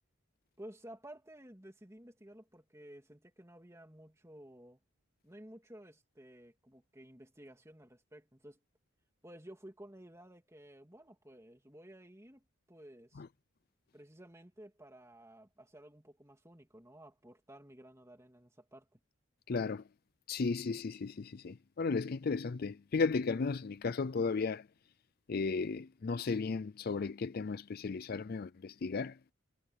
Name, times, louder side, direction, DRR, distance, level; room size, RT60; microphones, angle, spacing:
voice 1, 0.6-4.8 5.2-8.6 9.2-13.2 13.9-19.0, right 1 dB, 15° right, 2.8 m, -54 dB
voice 2, 19.5-19.8 20.3-24.7 25.3-29.2, left 4 dB, 45° left, 0.4 m, -35 dB
head